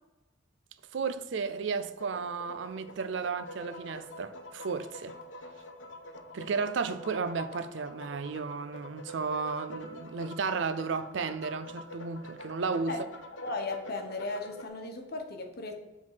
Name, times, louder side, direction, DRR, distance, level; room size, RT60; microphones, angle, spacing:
voice 1, 0.9-5.2 6.3-13.1, right 5 dB, 70° right, 0.5 m, -33 dB
sound 1, 1.8-14.7, left 1 dB, 70° left, 0.9 m, -46 dB
voice 2, 13.4-15.7, left 3 dB, 55° left, 1.1 m, -36 dB
7.8 x 3.7 x 5.6 m
head